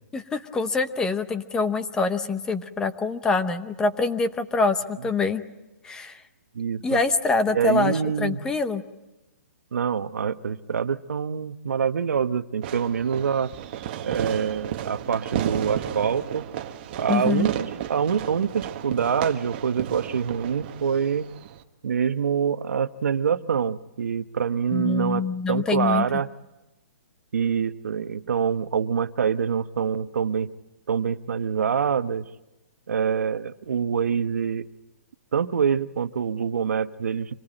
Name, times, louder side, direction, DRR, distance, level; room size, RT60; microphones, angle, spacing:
voice 1, 0.1-5.4 5.8-6.2 6.8-8.8 17.1-17.5 24.7-26.2, left 4 dB, 10° left, 10 dB, 0.8 m, -25 dB
voice 2, 6.5-7.0 7.5-8.4 9.7-13.5 14.0-16.4 16.9-21.3 21.8-25.2 25.5-26.3 27.3-30.5 30.9-32.3 32.9-34.7 35.3-37.3, right 7 dB, 75° right, 12 dB, 1.0 m, -25 dB
Fireworks, 12.6-21.6, right 11 dB, 35° right, 1.3 m, -33 dB
26.0 x 18.5 x 8.9 m, 1.0 s
hypercardioid pair, 160°, 8 cm